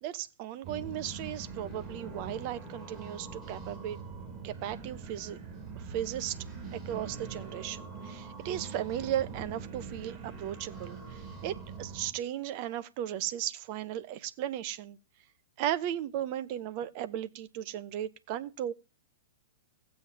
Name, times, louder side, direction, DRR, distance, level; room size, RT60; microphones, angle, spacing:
voice 1, 0.0-4.0 4.4-5.4 5.9-6.4 6.7-11.0 11.4-15.0 15.6-18.7, right 11 dB, 40° right, 0.7 m, -36 dB
sound 1, 0.6-12.1, right 4 dB, 20° right, 3.0 m, -43 dB
17.0 x 7.8 x 2.7 m
figure-of-eight pair, 105°, 0 cm